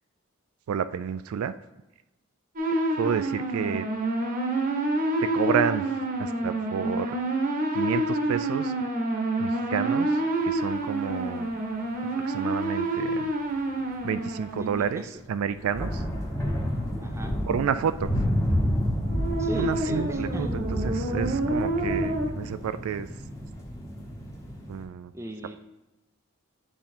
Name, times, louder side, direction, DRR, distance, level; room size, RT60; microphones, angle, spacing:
voice 1, 0.7-1.5 3.0-3.9 5.2-5.9 6.2-7.2 7.7-8.7 9.4-11.5 12.1-13.3 14.0-15.0 15.3-16.0 17.5-18.1 19.5-23.1 24.7-25.1, right 7 dB, 80° right, 13 dB, 0.3 m, -30 dB
sound 1, 2.6-14.9 19.1-22.3, right 2 dB, 40° right, 1.0 m, -28 dB
sound 2, 13.6-13.7 13.9-14.1 14.4-14.9 15.4-24.8, equal, 15° left, 1.1 m, -30 dB
voice 2, 14.6-15.1 17.0-17.3 19.4-20.5 25.1-25.6, right 1 dB, 15° right, 6 dB, 0.5 m, -37 dB
8.0 x 3.6 x 4.3 m, 1.0 s
head